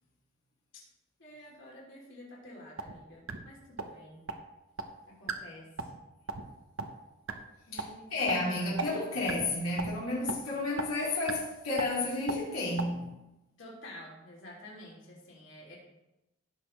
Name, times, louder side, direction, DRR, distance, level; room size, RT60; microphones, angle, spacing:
voice 1, 1.2-4.2 5.1-5.9 7.7-8.3 13.6-15.8, left 1 dB, 60° left, 3.2 m, -50 dB
sound 1, 2.8-2.9 3.3-3.4 3.8-3.9 4.3-4.4 4.8-4.9 5.3-5.4 5.8-6.0 6.3-6.4 6.8-6.9 7.3-7.4 7.8-7.9 8.3-8.4 8.8-8.9 9.3-9.5 9.8-9.9 10.3-10.4 10.8-10.9 11.3-11.4 11.8-11.9 12.3-12.4 12.8-12.9, right 4 dB, 70° right, 0.9 m, -33 dB
voice 2, 8.1-13.1, left 2 dB, 75° left, 3.0 m, -31 dB
16.0 x 6.4 x 3.3 m
head